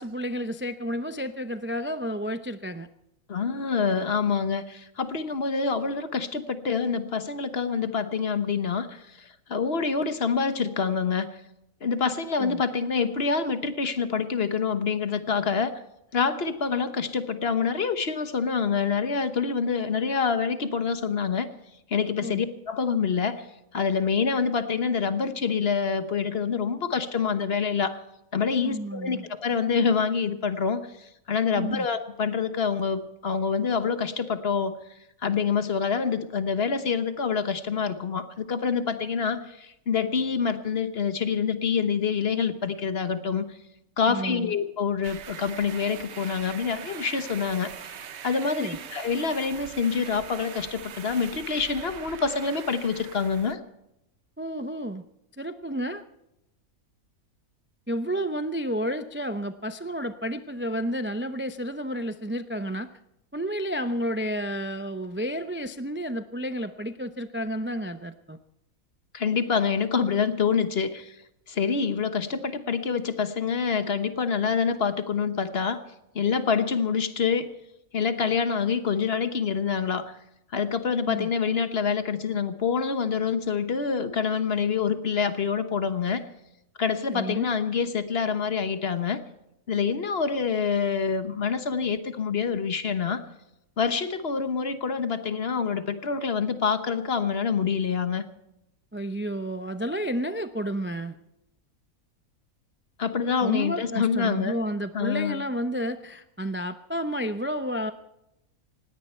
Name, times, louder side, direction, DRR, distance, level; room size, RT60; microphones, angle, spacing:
voice 1, 0.0-2.9 12.4-12.6 22.2-22.4 28.6-29.2 31.5-31.9 44.1-44.5 48.5-48.8 54.4-55.0 55.4-56.0 57.9-62.9 63.3-68.4 81.1-81.3 87.1-87.5 98.9-101.2 103.4-107.9, equal, 15° right, 9 dB, 0.4 m, -31 dB
voice 2, 3.3-11.4 11.8-15.8 16.1-21.5 21.9-23.4 23.7-28.0 28.3-34.8 35.2-43.6 44.0-48.0 48.2-53.6 69.1-71.1 71.5-75.8 76.1-77.5 77.9-80.2 80.5-86.2 86.8-89.2 89.7-93.2 93.8-98.2 103.0-104.6 104.9-105.4, left 6 dB, 45° left, 10 dB, 1.3 m, -26 dB
sound 1, 45.0-53.5, right 8 dB, 55° right, 1.1 m, -42 dB
19.5 x 17.0 x 4.4 m, 0.86 s
omnidirectional pair, 1.5 m